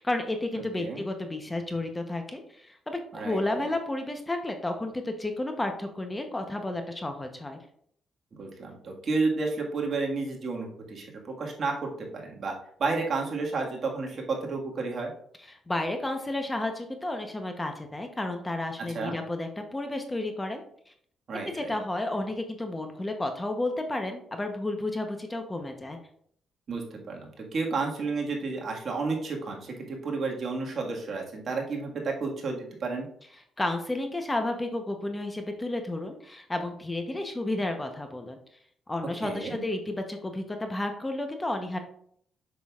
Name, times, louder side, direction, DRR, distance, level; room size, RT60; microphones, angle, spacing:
voice 1, 0.0-7.6 15.4-20.6 20.9-21.0 21.4-26.0 33.6-38.4 38.9-41.8, left 2 dB, 15° left, 5 dB, 0.8 m, -32 dB
voice 2, 3.1-3.7 8.4-12.5 12.8-15.1 18.9-19.2 21.3-21.7 26.7-33.1 39.2-39.6, right 3 dB, 50° right, 0 dB, 1.7 m, -31 dB
7.3 x 6.1 x 2.4 m, 0.64 s
cardioid pair, 90°, 0 cm